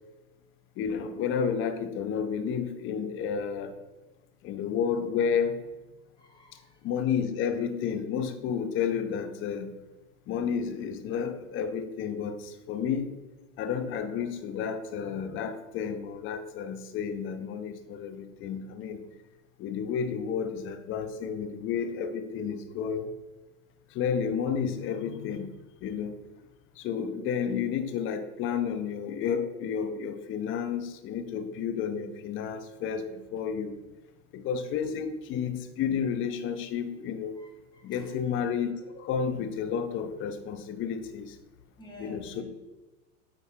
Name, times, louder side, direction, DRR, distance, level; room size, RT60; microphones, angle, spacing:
voice 1, 0.8-3.7 4.4-5.7 6.8-9.7 10.3-13.2 13.6-19.1 19.6-23.1 23.9-25.5 25.8-26.2 26.8-33.8 34.3-37.4 37.8-41.4 42.0-42.4, left 7 dB, 30° left, 10 dB, 0.6 m, -31 dB
voice 2, 6.2-6.8 37.4-38.1 41.8-42.4, left 2 dB, 10° left, -1 dB, 1.7 m, -49 dB
8.8 x 4.0 x 3.6 m, 1.1 s
hypercardioid pair, 120°, 45 cm